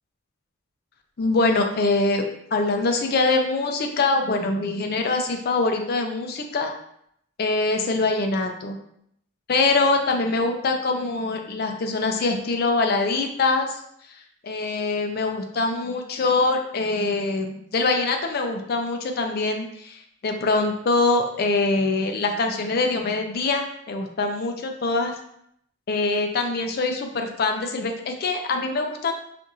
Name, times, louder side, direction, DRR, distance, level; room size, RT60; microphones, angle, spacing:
voice 1, 1.2-2.2 2.5-6.7 7.4-8.8 9.5-13.8 14.4-25.1 25.9-29.1, left 3 dB, 55° left, 4 dB, 0.5 m, -24 dB
4.3 x 2.4 x 2.6 m, 0.73 s
head